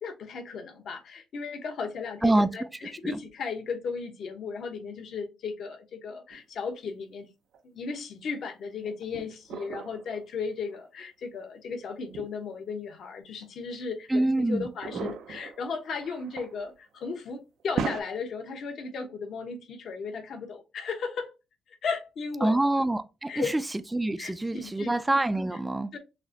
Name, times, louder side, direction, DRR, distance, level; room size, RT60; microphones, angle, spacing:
voice 1, 0.0-7.3 7.6-21.3 21.8-22.6 23.3-23.5 24.2-25.0 25.9-26.0, left 5 dB, 65° left, 1.0 m, -35 dB
sound 1, 6.3-6.4 7.5-7.6 8.8-10.2 10.7-10.8 11.9-12.3 13.4-13.5 14.8-16.7 17.0-17.3 17.6-18.0, right 6 dB, 75° right, 0.5 m, -37 dB
voice 2, 14.1-14.7 15.0-15.1 22.4-23.3 23.9-25.9, right 2 dB, 15° right, 0.4 m, -25 dB
6.1 x 2.1 x 2.7 m
cardioid pair, 90°, 0 cm